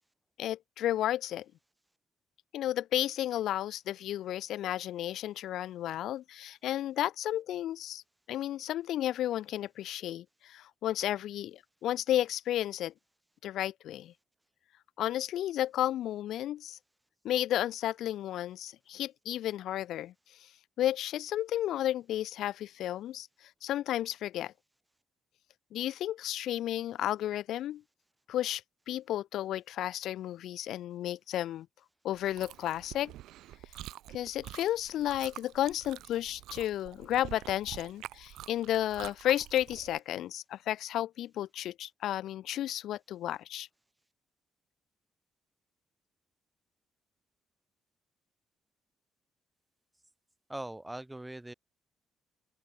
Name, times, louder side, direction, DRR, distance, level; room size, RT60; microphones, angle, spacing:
voice 1, 0.4-1.4 2.5-8.0 8.3-12.9 13.4-14.1 15.0-16.8 17.2-20.1 20.8-23.3 23.6-24.5 25.7-27.8 28.3-28.6 28.9-31.7 32.0-33.1 34.1-43.7, left 12 dB, 80° left, 0.8 m, -32 dB
Chewing mastication, 32.1-40.0, right 14 dB, 85° right, 3.9 m, -47 dB
voice 2, 50.5-51.5, right 1 dB, 10° right, 6.5 m, -41 dB
open air
cardioid pair, 90°, 0 cm